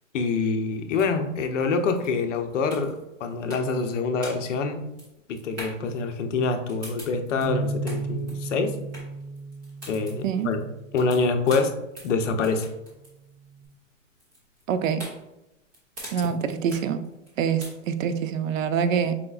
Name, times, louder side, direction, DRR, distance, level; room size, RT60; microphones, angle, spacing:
voice 1, 0.1-4.8 5.3-8.7 9.9-10.6 10.9-11.7 12.0-12.7 16.2-16.3, left 4 dB, 65° left, 6 dB, 0.7 m, -26 dB
sound 1, 0.7-18.2, equal, 10° right, 0.5 m, -44 dB
Bass guitar, 7.4-11.8 12.5-13.6, right 3 dB, 50° right, 0.9 m, -36 dB
voice 2, 14.7-15.0 16.1-17.0 17.4-19.1, right 7 dB, 90° right, 10 dB, 0.6 m, -25 dB
5.0 x 3.7 x 2.3 m, 0.93 s
hypercardioid pair, 170°, 39 cm